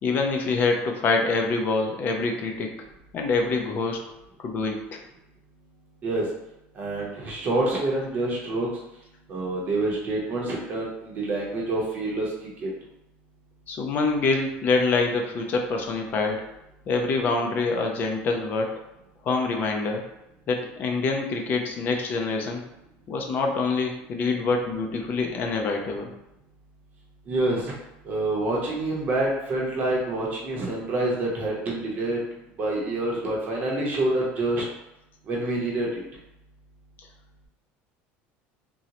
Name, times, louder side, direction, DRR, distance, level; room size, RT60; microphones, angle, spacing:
voice 1, 0.0-2.7 3.1-4.0 4.4-5.0 13.7-16.5 16.9-18.8 19.2-20.0 20.5-22.6 23.1-26.1, left 3 dB, 35° left, 3 dB, 0.4 m, -25 dB
voice 2, 6.8-8.7 9.3-12.3 12.6-12.7 27.3-27.7 28.0-32.2 32.6-34.6 35.3-36.0, right 2 dB, 35° right, -3 dB, 0.7 m, -27 dB
3.7 x 2.0 x 2.8 m, 0.90 s
cardioid pair, 160°, 5 cm